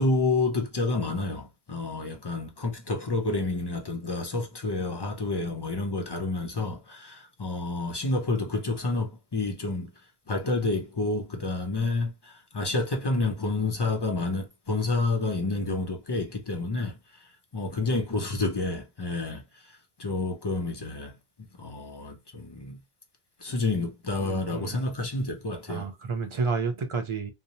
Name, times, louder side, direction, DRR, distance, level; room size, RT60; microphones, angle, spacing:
voice 1, 0.0-9.9 10.3-16.9 17.5-19.4 20.0-21.1 21.6-22.8 23.4-25.9, left 2 dB, 35° left, 0.4 m, -29 dB
voice 2, 24.2-24.8 25.7-27.3, right 4 dB, 45° right, 0.4 m, -30 dB
2.7 x 2.0 x 2.6 m
omnidirectional pair, 1.1 m